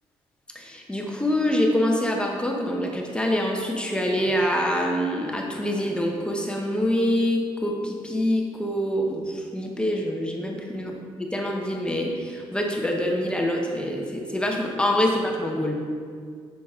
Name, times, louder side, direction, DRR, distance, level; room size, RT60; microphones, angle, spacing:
voice 1, 0.5-10.9 11.2-15.9, left 1 dB, 10° left, 0 dB, 0.9 m, -25 dB
7.7 x 6.4 x 3.6 m, 2.1 s
cardioid pair, 120°, 10 cm